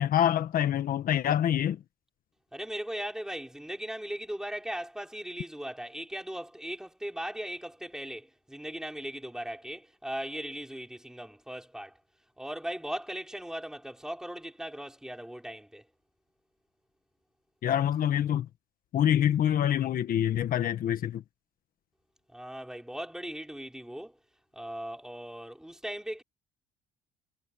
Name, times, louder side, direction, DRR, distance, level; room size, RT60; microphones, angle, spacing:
voice 1, 0.0-1.8 17.6-18.5 18.9-21.2, left 10 dB, 55° left, 1.4 m, -26 dB
voice 2, 2.5-12.0 12.4-15.8 22.3-24.2 24.5-26.2, right 1 dB, 5° right, 4.9 m, -38 dB
cardioid pair, 110°, 17 cm